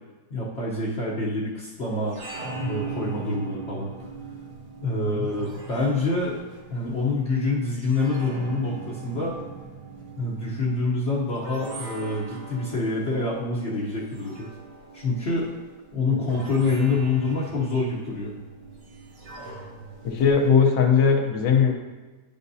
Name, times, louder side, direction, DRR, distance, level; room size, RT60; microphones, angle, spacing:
voice 1, 0.3-2.2 2.6-3.9 4.8-6.4 6.7-9.3 10.2-14.5 14.9-15.5 15.9-18.3, left 3 dB, 45° left, -6 dB, 1.1 m, -26 dB
sound 1, 1.9-20.5, right 4 dB, 65° right, 1.6 m, -40 dB
voice 2, 20.0-21.7, left 6 dB, 75° left, 2 dB, 1.6 m, -19 dB
10.5 x 5.2 x 2.7 m, 1.3 s
omnidirectional pair, 2.0 m